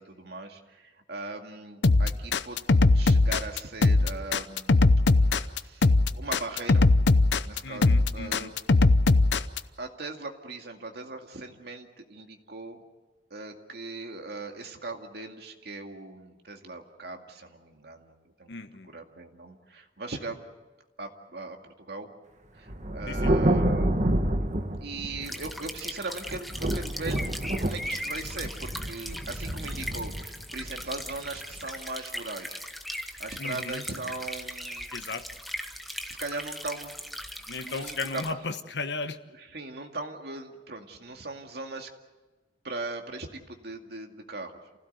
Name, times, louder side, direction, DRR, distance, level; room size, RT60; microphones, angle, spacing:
voice 1, 0.0-4.7 5.3-6.9 7.4-8.6 9.8-12.8 13.3-18.5 18.9-20.4 21.0-22.1 22.5-23.9 24.8-27.3 27.6-32.6 33.2-34.9 36.1-36.9 37.6-38.2 39.4-41.9 42.6-44.6, right 3 dB, 65° right, 3 dB, 2.2 m, -39 dB
sound 1, 1.8-9.6, left 3 dB, 90° left, 0.8 m, -20 dB
voice 2, 7.6-8.5 18.5-18.9 23.1-23.3 33.4-33.8 34.9-35.2 37.5-39.2, left 3 dB, 75° left, 9 dB, 1.2 m, -35 dB
Thunder, 22.7-25.8 26.3-31.6, right 1 dB, 45° right, 1.5 m, -28 dB
sound 2, 25.2-38.3, equal, ahead, 1.2 m, -39 dB
28.0 x 16.5 x 8.1 m, 1.2 s
head